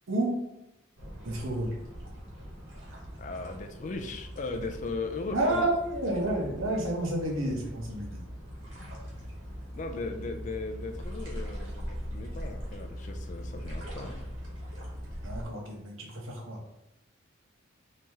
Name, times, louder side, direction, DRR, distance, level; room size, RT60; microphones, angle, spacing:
voice 1, 0.1-0.5 1.2-1.8 5.3-8.2 15.2-16.6, right 1 dB, 85° right, 0 dB, 0.9 m, -30 dB
sound 1, 1.0-15.5, equal, 70° right, 1.2 m, -41 dB
voice 2, 3.2-5.7 8.8-9.3 9.7-14.3, left 3 dB, 40° left, 5 dB, 0.3 m, -38 dB
3.0 x 2.8 x 3.4 m, 0.91 s
head